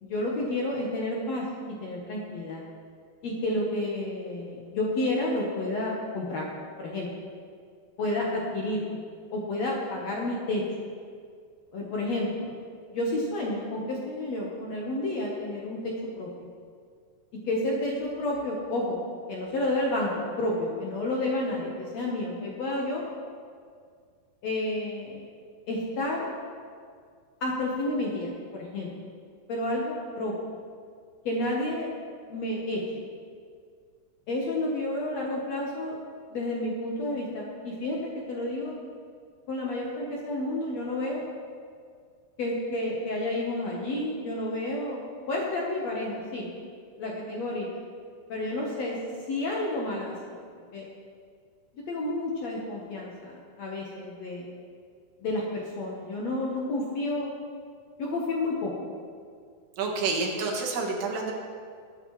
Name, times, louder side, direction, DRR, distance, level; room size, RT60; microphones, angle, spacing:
voice 1, 0.0-1.5 1.8-2.6 3.2-6.5 6.8-7.1 8.0-9.0 9.3-10.9 11.7-12.6 12.9-16.3 17.5-19.0 19.3-23.1 24.4-25.2 25.7-26.3 27.4-28.9 29.5-30.3 31.3-31.9 32.3-32.8 34.3-36.0 36.3-38.8 39.5-41.3 42.4-46.5 47.0-47.7 48.3-49.0 49.3-50.4 50.7-50.9 51.8-54.5 55.2-57.3 58.0-58.7, left 1 dB, 65° left, -3 dB, 1.8 m, -30 dB
voice 2, 59.8-61.3, right 4 dB, 80° right, 0 dB, 3.5 m, -28 dB
21.0 x 9.5 x 3.2 m, 2.1 s
omnidirectional pair, 4.6 m